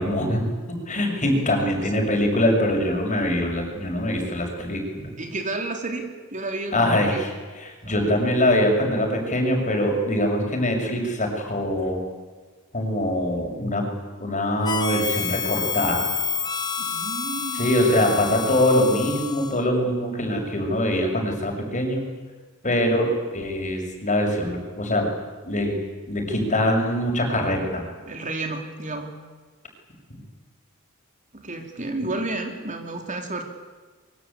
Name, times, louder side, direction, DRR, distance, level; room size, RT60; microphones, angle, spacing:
voice 1, 0.0-5.1 6.7-7.3 7.5-12.0 12.7-13.9 14.2-16.1 17.5-22.0 22.6-25.1 25.4-25.8 26.1-27.8, left 1 dB, 35° left, 2 dB, 6.6 m, -23 dB
voice 2, 1.2-1.9 5.2-7.2 7.8-8.0 16.8-18.0 28.1-29.1 31.3-33.4, right 2 dB, 35° right, 4 dB, 3.0 m, -32 dB
Harmonica, 14.6-19.7, left 6 dB, 20° left, 1.2 m, -29 dB
25.0 x 23.5 x 8.6 m, 1.4 s
head